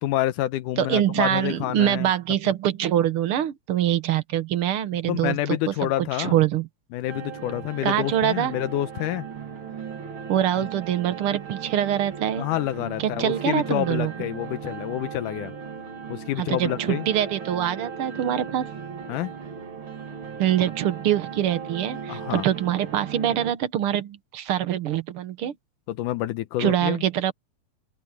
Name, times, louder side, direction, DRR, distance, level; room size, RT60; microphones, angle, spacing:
voice 1, 0.0-2.1 5.1-6.4 6.9-9.3 10.6-10.7 12.4-15.5 16.1-17.1 19.1-19.3 22.1-22.5 25.9-27.0, left 14 dB, 85° left, 2.3 m, -28 dB
voice 2, 0.8-5.7 6.2-6.7 7.8-8.5 10.3-12.5 13.0-14.1 16.4-18.7 20.4-25.5 26.6-27.3, right 11 dB, 60° right, 1.6 m, -24 dB
Electric mandocello drone in Dm, 7.1-23.5, right 6 dB, 40° right, 2.9 m, -37 dB
open air
omnidirectional pair, 3.6 m